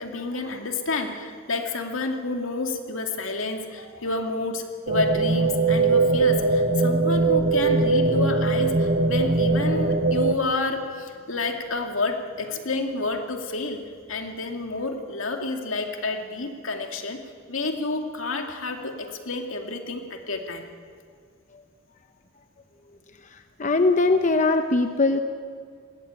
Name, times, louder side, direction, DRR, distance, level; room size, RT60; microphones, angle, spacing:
voice 1, 0.0-13.8 14.1-17.2 17.5-20.6, left 3 dB, 75° left, 3 dB, 2.4 m, -29 dB
sound 1, 4.9-10.4, right 3 dB, 45° right, 1.1 m, -21 dB
voice 2, 23.3-25.2, left 3 dB, 35° left, 7 dB, 0.8 m, -21 dB
20.5 x 17.0 x 9.0 m, 2.1 s
head